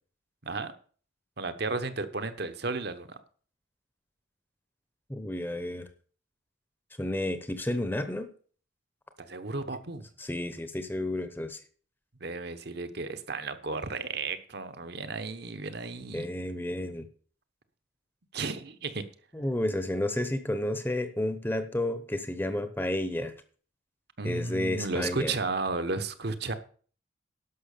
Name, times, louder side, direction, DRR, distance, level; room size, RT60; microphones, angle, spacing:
voice 1, 1.4-3.1 9.2-10.0 12.2-16.3 18.3-19.0 24.2-26.5, right 3 dB, 55° right, 1.1 m, -33 dB
voice 2, 5.1-5.8 7.0-8.3 10.2-11.6 16.1-17.1 19.3-23.3 24.2-25.3, left 1 dB, 10° left, 0.9 m, -31 dB
11.5 x 6.3 x 6.7 m
head